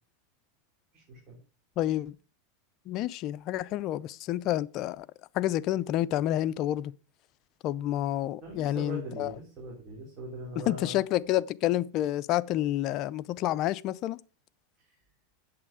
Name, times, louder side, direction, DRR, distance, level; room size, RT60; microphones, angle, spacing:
voice 1, 0.9-1.4 8.4-11.0 14.8-14.9, right 2 dB, 30° right, 3.6 m, -41 dB
voice 2, 1.8-2.2 2.9-5.1 5.3-6.9 7.6-9.3 10.7-14.2, left 13 dB, 40° left, 0.4 m, -29 dB
8.6 x 7.3 x 5.0 m
supercardioid pair, 140°, 0 cm